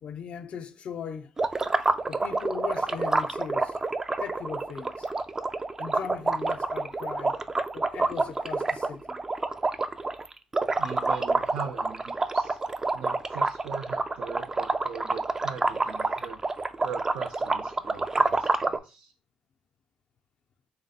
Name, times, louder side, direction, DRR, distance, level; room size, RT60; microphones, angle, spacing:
voice 1, 0.0-1.3 2.1-3.8 4.2-5.1 5.8-7.4 7.7-9.2, left 7 dB, 55° left, 0.4 m, -38 dB
sound 1, 1.4-18.8, right 3 dB, 20° right, 0.3 m, -28 dB
voice 2, 10.8-12.6 12.9-16.4 16.8-19.1, right 6 dB, 80° right, 0.5 m, -40 dB
3.1 x 2.6 x 4.0 m
cardioid pair, 100°, 2 cm